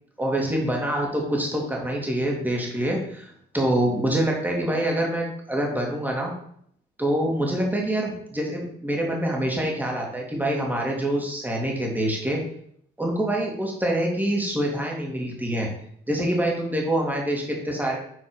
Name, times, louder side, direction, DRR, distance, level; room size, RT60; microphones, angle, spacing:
voice 1, 0.2-6.3 7.0-12.4 13.0-15.7 16.1-18.0, right 1 dB, 10° right, -1 dB, 2.6 m, -25 dB
7.9 x 4.5 x 5.2 m, 0.67 s
cardioid pair, 90°, 20 cm